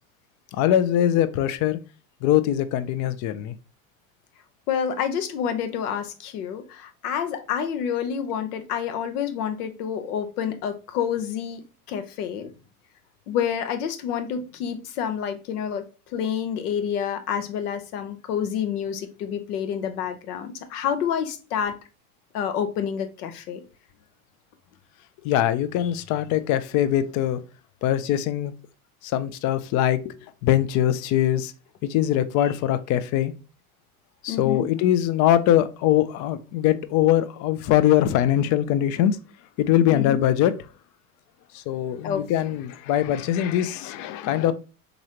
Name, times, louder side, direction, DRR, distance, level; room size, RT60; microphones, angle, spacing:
voice 1, 0.5-1.8 2.2-3.5 25.2-27.4 27.8-28.5 29.0-30.2 30.4-31.5 31.9-33.3 34.2-39.2 39.6-40.5 41.5-44.5, left 11 dB, 45° left, 0.5 m, -22 dB
voice 2, 4.7-11.6 11.9-12.5 13.3-21.7 22.3-23.6 34.3-34.7 39.9-40.3 42.0-42.2, left 8 dB, 75° left, 0.8 m, -28 dB
3.9 x 3.0 x 2.8 m
hypercardioid pair, 95°, 45 cm